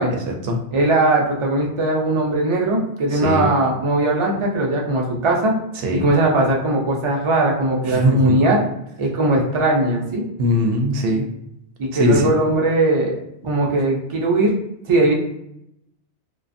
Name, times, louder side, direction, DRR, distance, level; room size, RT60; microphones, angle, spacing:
voice 1, 0.1-0.6 3.1-3.5 5.8-6.1 7.9-8.4 10.4-11.3 11.9-12.2, equal, 65° right, 2 dB, 0.7 m, -20 dB
voice 2, 0.7-5.5 5.9-8.6 9.0-10.2 11.8-14.5 14.9-15.1, right 2 dB, 45° right, -1 dB, 0.4 m, -19 dB
2.4 x 2.2 x 2.5 m, 0.79 s
omnidirectional pair, 1.2 m